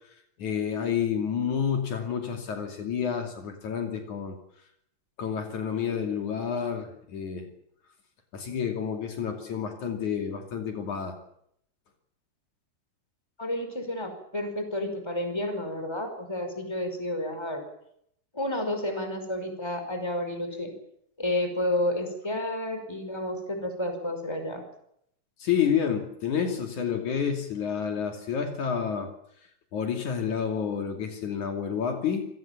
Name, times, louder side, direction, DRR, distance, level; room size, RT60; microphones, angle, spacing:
voice 1, 0.4-4.4 5.2-7.5 8.3-11.2 25.4-29.1 29.7-32.3, left 7 dB, 65° left, 4 dB, 4.0 m, -29 dB
voice 2, 13.4-17.6 18.3-20.7 21.2-24.6, left 1 dB, 10° left, 6 dB, 5.2 m, -31 dB
28.0 x 17.5 x 7.3 m, 0.72 s
omnidirectional pair, 3.6 m